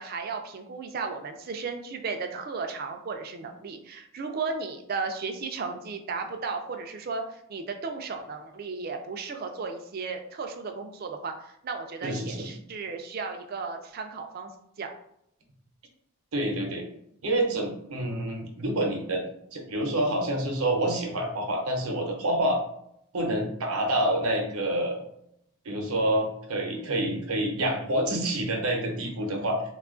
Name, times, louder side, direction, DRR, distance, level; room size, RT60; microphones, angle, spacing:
voice 1, 0.0-14.5 14.8-14.9, right 4 dB, 45° right, 5 dB, 0.4 m, -35 dB
voice 2, 12.0-12.4 16.3-16.8 17.2-19.2 19.5-22.6 23.1-25.0 25.6-29.6, right 1 dB, 85° right, 2 dB, 0.7 m, -27 dB
3.0 x 2.3 x 3.6 m, 0.75 s
head